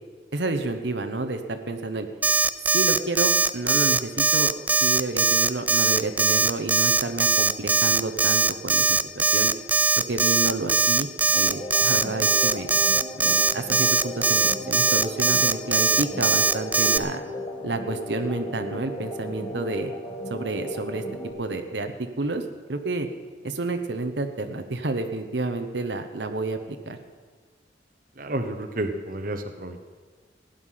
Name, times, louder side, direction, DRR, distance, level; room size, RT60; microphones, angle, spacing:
voice 1, 0.3-2.1 2.6-9.5 10.1-11.1 11.3-12.7 13.1-17.2 17.6-19.9 20.3-21.0 21.4-23.1 23.4-27.0, right 2 dB, 75° right, 7 dB, 1.0 m, -30 dB
Alarm, 2.2-17.0, right 4 dB, 10° right, 0.3 m, -21 dB
sound 1, 11.3-21.3, left 1 dB, 30° left, 4.1 m, -36 dB
voice 2, 28.2-29.8, right 1 dB, 50° right, 7 dB, 1.0 m, -31 dB
16.0 x 10.5 x 5.7 m, 1.5 s
head